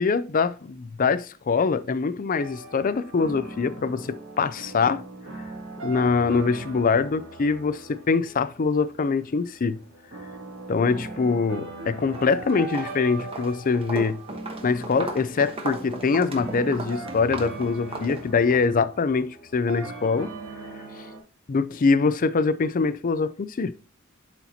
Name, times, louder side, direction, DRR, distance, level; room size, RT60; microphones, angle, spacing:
voice 1, 0.0-5.1 5.8-9.8 10.7-14.2 14.6-20.3 21.5-23.7, left 4 dB, 40° left, 0.4 m, -24 dB
sound 1, 2.3-21.2, right 3 dB, 70° right, 2.4 m, -40 dB
Walk footsteps, 12.0-12.3 12.6-18.7, right 2 dB, 30° right, 1.1 m, -36 dB
11.0 x 4.2 x 2.8 m
head